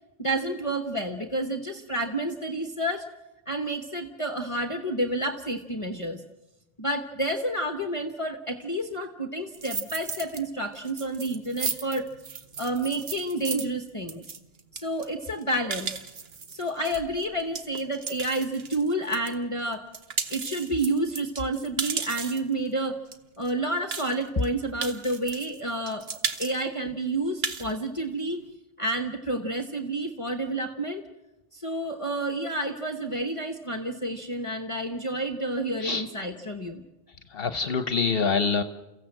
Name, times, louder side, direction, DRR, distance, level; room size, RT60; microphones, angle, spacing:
voice 1, 0.2-3.1 3.5-6.2 6.8-12.1 12.6-14.2 14.7-15.9 16.5-19.9 20.3-23.0 23.4-26.1 26.4-28.4 28.8-31.0 31.5-36.8, right 1 dB, 30° left, 6 dB, 1.2 m, -29 dB
sound 1, 9.5-10.4 10.7-19.3 19.7-22.5 23.1-23.2 23.4-23.5 23.9-24.4 24.8-25.6 25.9-26.5 26.9-27.0 27.2-27.7, right 5 dB, 65° right, 1.4 m, -34 dB
voice 2, 37.3-38.6, left 5 dB, 65° left, 9 dB, 1.2 m, -25 dB
29.5 x 15.5 x 7.6 m, 1.0 s
omnidirectional pair, 1.1 m